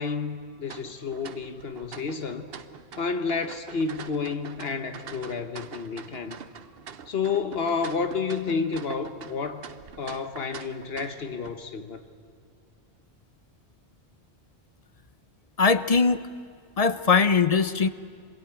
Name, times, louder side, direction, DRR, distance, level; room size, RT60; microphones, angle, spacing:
voice 1, 0.0-2.5 3.0-6.4 7.1-9.6 10.0-12.0, left 5 dB, 65° left, 8 dB, 1.2 m, -30 dB
sound 1, 0.7-11.5, right 7 dB, 65° right, 1.1 m, -44 dB
voice 2, 15.6-16.2 16.8-17.9, left 4 dB, 40° left, 13 dB, 0.7 m, -21 dB
25.5 x 21.0 x 8.9 m, 2.1 s
omnidirectional pair, 1.1 m